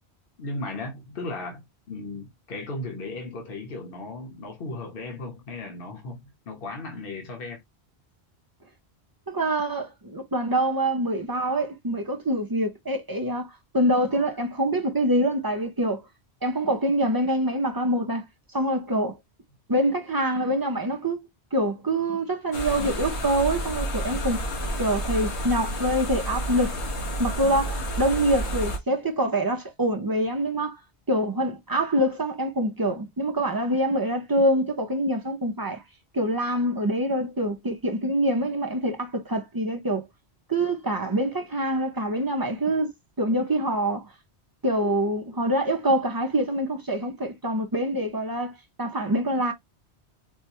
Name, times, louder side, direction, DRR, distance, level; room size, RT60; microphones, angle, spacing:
voice 1, 0.4-7.6, left 2 dB, 55° left, 1.2 m, -36 dB
voice 2, 9.3-16.0 16.4-18.2 18.5-19.2 19.7-24.4 24.8-26.8 27.2-30.8 31.1-35.8 36.1-40.0 40.5-44.0 44.6-49.5, right 1 dB, 30° right, 0.4 m, -25 dB
sound 1, 22.5-28.8, equal, 90° left, 1.4 m, -30 dB
4.5 x 2.2 x 2.7 m
omnidirectional pair, 1.1 m